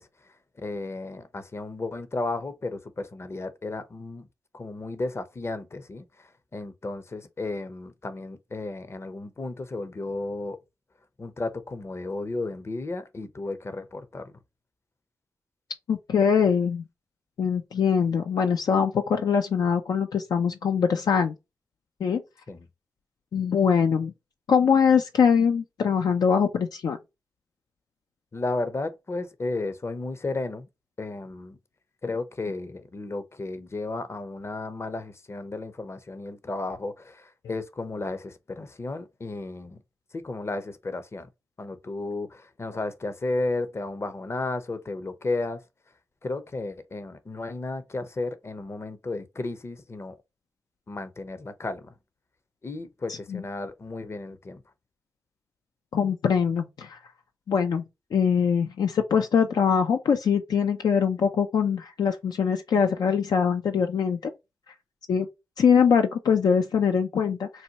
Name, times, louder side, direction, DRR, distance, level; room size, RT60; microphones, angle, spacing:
voice 1, 0.0-4.3 4.5-10.6 11.2-14.3 22.5-22.7 28.3-30.7 31.0-31.6 32.0-39.8 40.1-41.3 41.6-45.6 46.2-50.2 50.9-51.9 52.6-54.6, left 2 dB, 40° left, 0.7 m, -33 dB
voice 2, 15.9-16.8 17.4-21.3 22.0-22.2 23.3-24.1 24.5-27.0 53.3-53.4 55.9-57.0 57.5-57.8 58.1-64.3 65.1-65.3 65.6-67.5, left 6 dB, 70° left, 0.4 m, -23 dB
4.1 x 2.2 x 2.8 m
supercardioid pair, 40°, 7 cm